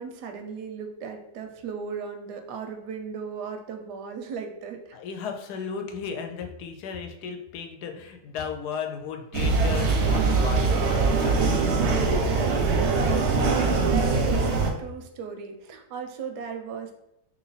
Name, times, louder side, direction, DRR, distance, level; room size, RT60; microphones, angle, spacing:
voice 1, 0.0-5.0 12.0-16.9, right 5 dB, 90° right, 5 dB, 1.2 m, -36 dB
voice 2, 4.9-11.5, left 6 dB, 85° left, 5 dB, 1.1 m, -35 dB
sound 1, 9.3-14.7, right 4 dB, 60° right, 0.7 m, -22 dB
3.1 x 3.0 x 4.0 m, 0.82 s
omnidirectional pair, 1.7 m